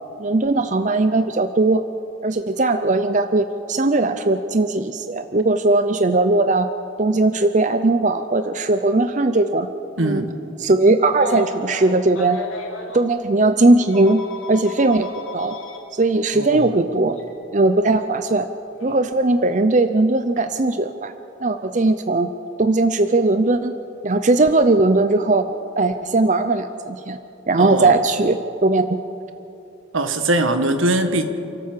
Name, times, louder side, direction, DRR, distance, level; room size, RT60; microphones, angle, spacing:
voice 1, 0.2-1.8 2.2-6.7 7.0-9.7 10.0-10.2 10.6-12.4 12.9-14.2 14.5-15.6 15.9-17.2 17.5-18.5 18.8-21.1 21.4-22.3 22.6-23.7 24.0-25.5 25.8-27.2 27.5-29.0, right 2 dB, 35° right, 9 dB, 0.6 m, -18 dB
voice 2, 10.0-10.4 16.3-16.7 27.6-27.9 29.9-31.2, right 2 dB, 80° right, 8 dB, 1.6 m, -21 dB
Telephone, 11.1-13.0 13.9-15.8 17.1-17.3 18.8-19.0, left 2 dB, 80° left, 3.0 m, -34 dB
28.5 x 12.5 x 7.5 m, 2.8 s
head